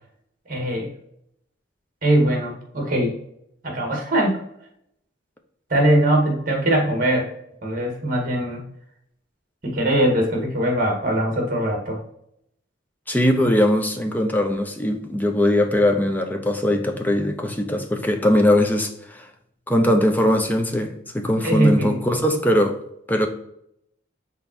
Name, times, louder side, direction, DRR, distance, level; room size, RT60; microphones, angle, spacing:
voice 1, 0.5-0.9 2.0-3.2 3.6-4.4 5.7-7.3 7.6-8.6 9.6-12.0 21.4-22.2, right 1 dB, 45° right, 2.0 m, -21 dB
voice 2, 13.1-19.3 19.7-22.8 23.1-23.3, left 1 dB, 10° left, 0.7 m, -20 dB
5.8 x 4.0 x 4.2 m
head